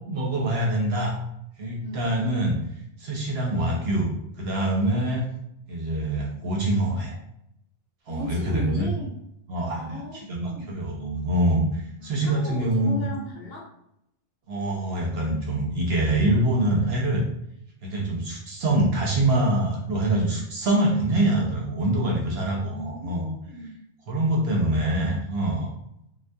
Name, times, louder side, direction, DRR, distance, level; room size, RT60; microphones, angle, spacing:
voice 1, 0.1-1.2 1.6-2.6 3.0-4.1 4.4-5.2 5.7-7.1 8.1-8.9 9.5-13.1 14.5-17.2 17.8-23.3 24.1-25.7, right 1 dB, 65° right, -2 dB, 0.8 m, -25 dB
voice 2, 1.8-2.1 5.0-5.1 8.1-9.1 9.8-10.7 12.0-13.7 22.6-23.8, left 1 dB, 60° left, -3 dB, 0.8 m, -37 dB
2.2 x 2.2 x 2.6 m, 0.77 s
omnidirectional pair, 1.2 m